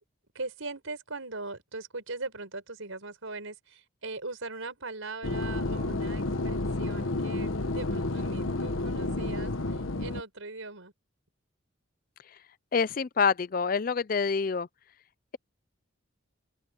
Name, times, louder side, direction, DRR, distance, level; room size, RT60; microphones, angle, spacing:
voice 1, 0.4-10.9, right 3 dB, 85° right, 5.2 m, -40 dB
sound 1, 5.2-10.2, left 2 dB, 80° left, 1.3 m, -30 dB
voice 2, 12.7-14.7, left 5 dB, 45° left, 0.4 m, -26 dB
open air
head